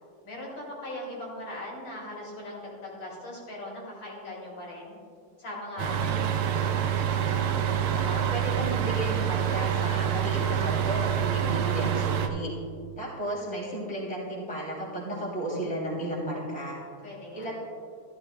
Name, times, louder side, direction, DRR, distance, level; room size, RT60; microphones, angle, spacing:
voice 1, 0.2-5.0 5.4-6.6 17.0-17.5, left 1 dB, 60° left, -4 dB, 3.1 m, -39 dB
sound 1, 5.8-12.3, right 9 dB, 85° right, 1.6 m, -27 dB
voice 2, 8.0-12.5 13.0-16.8 17.3-17.5, right 1 dB, 5° left, -6 dB, 2.8 m, -33 dB
13.5 x 13.0 x 2.3 m, 2.2 s
omnidirectional pair, 2.4 m